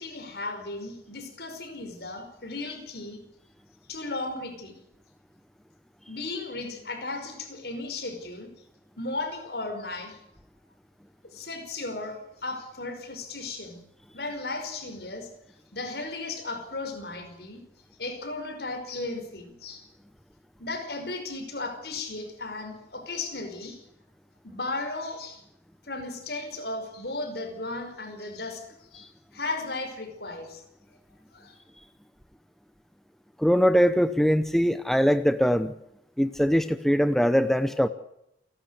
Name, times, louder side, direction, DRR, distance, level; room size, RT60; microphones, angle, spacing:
voice 1, 0.0-3.2 3.9-4.8 6.1-8.5 9.0-10.2 11.2-13.8 14.1-15.3 15.7-17.7 18.0-19.9 20.6-23.8 24.4-25.4 25.8-30.6 31.3-31.5, left 2 dB, 65° left, 5.4 m, -35 dB
voice 2, 33.4-35.7 36.2-37.9, equal, ahead, 0.7 m, -22 dB
29.0 x 12.0 x 8.2 m
head